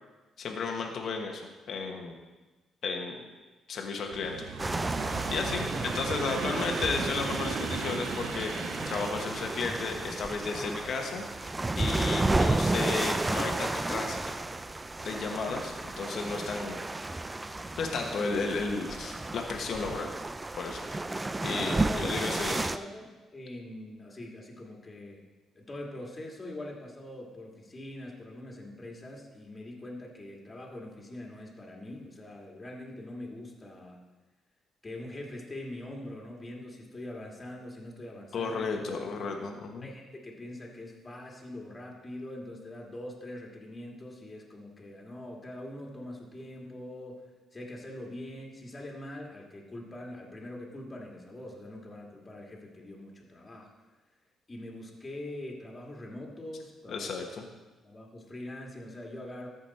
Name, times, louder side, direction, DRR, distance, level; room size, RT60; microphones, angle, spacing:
voice 1, 0.4-1.4 1.7-2.1 2.8-3.3 3.7-4.5 5.3-14.4 15.0-17.3 17.8-20.1 20.6-20.8 21.4-22.7 38.3-39.9 56.9-57.4, left 4 dB, 60° left, 2 dB, 1.2 m, -34 dB
sound 1, 4.1-15.2 15.9-16.5 17.4-17.6 17.9-18.1, right 5 dB, 85° right, 0.9 m, -39 dB
sound 2, 4.6-22.8, right 2 dB, 20° right, 0.4 m, -32 dB
voice 2, 21.4-25.2 25.5-34.0 34.8-38.8 39.8-53.7 54.5-57.1 57.8-59.5, left 1 dB, 25° left, -1 dB, 2.1 m, -43 dB
14.0 x 5.3 x 4.3 m, 1.2 s
cardioid pair, 90°, 0 cm